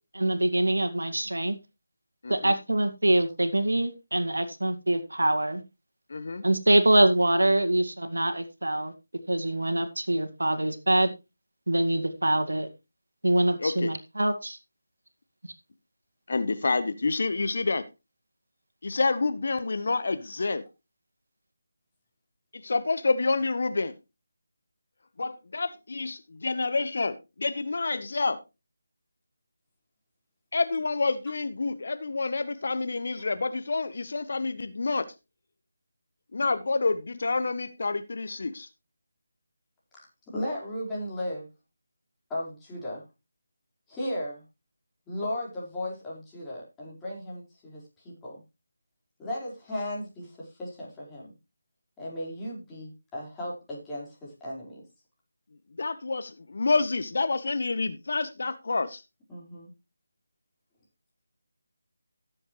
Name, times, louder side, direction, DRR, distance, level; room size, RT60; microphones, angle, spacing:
voice 1, 0.1-1.6 2.3-5.6 6.4-8.9 9.3-11.1 11.7-12.7 13.2-14.6, right 1 dB, 75° right, 1.9 m, -24 dB
voice 2, 2.2-2.5 6.1-6.4 13.6-13.9 16.3-17.9 18.8-20.6 22.5-23.9 25.2-28.4 30.5-35.1 36.3-38.7 55.8-59.0, left 3 dB, 55° left, 1.1 m, -28 dB
voice 3, 40.3-41.5 42.3-43.0 43.9-44.4 45.1-48.4 49.2-51.3 52.0-54.8 59.3-59.7, left 1 dB, 10° left, 4.6 m, -36 dB
17.0 x 7.7 x 3.1 m
figure-of-eight pair, 155°, 0 cm